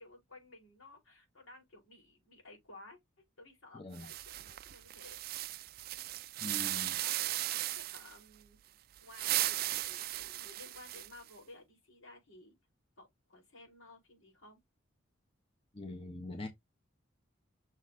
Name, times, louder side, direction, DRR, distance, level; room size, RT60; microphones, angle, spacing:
voice 1, 0.0-5.2 7.0-7.4 7.7-8.6 9.0-12.5 13.0-14.6, left 2 dB, 85° left, 4.9 m, -56 dB
voice 2, 3.7-4.1 6.4-7.0 15.7-16.5, left 2 dB, 25° left, 1.1 m, -43 dB
sound 1, 3.9-8.2 9.0-11.3, right 16 dB, 45° right, 0.3 m, -36 dB
6.4 x 4.0 x 3.8 m
head